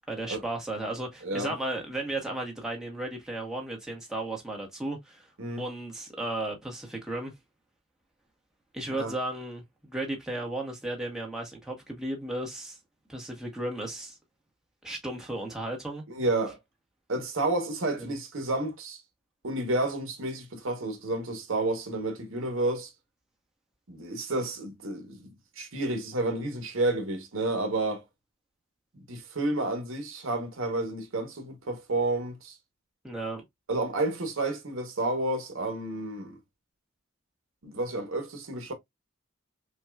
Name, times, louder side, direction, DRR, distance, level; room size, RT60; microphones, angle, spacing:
voice 1, 0.1-5.3 5.6-7.3 8.7-12.8 13.1-14.2 14.8-16.0 18.0-18.1 33.0-33.4, right 1 dB, 5° right, 1.0 m, -34 dB
voice 2, 1.2-1.5 5.4-5.6 9.0-9.1 16.1-16.6 17.1-19.0 19.4-22.9 23.9-28.0 28.9-32.6 33.7-36.4 37.6-38.7, right 2 dB, 70° right, 1.0 m, -30 dB
5.5 x 2.3 x 2.3 m
head